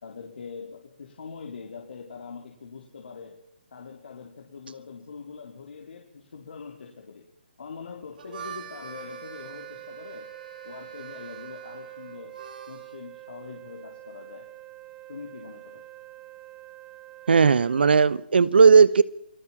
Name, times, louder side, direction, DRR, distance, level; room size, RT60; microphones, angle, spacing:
voice 1, 0.0-3.4 3.7-7.3 7.6-10.3 10.6-12.4 12.7-14.5 15.1-15.8, left 5 dB, 65° left, 1 dB, 3.8 m, -43 dB
Harmonica, 8.0-13.0, right 7 dB, 55° right, 3.4 m, -44 dB
Wind instrument woodwind instrument, 8.9-18.0, right 17 dB, 20° right, 2.3 m, -46 dB
voice 2, 17.3-19.0, right 5 dB, 70° right, 20 dB, 1.1 m, -16 dB
28.5 x 19.0 x 7.3 m, 0.79 s
hypercardioid pair, 150°, 6 cm